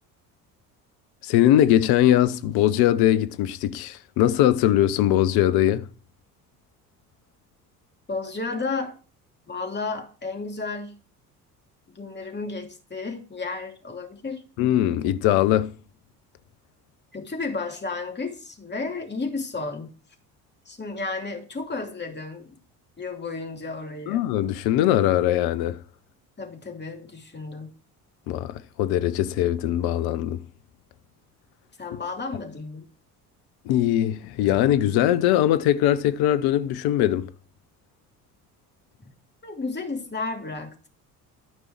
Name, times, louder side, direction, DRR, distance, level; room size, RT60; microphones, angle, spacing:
voice 1, 1.2-5.9 14.6-15.7 24.1-25.8 28.3-30.4 33.6-37.3, left 12 dB, 55° left, 0.9 m, -21 dB
voice 2, 8.1-8.9 9.5-11.0 11.9-14.4 17.1-19.9 20.7-22.5 23.0-24.2 26.4-27.7 31.8-32.9 39.0-39.1 39.4-40.9, left 3 dB, 20° left, 2.8 m, -32 dB
13.5 x 5.3 x 4.5 m
figure-of-eight pair, 55°, 46 cm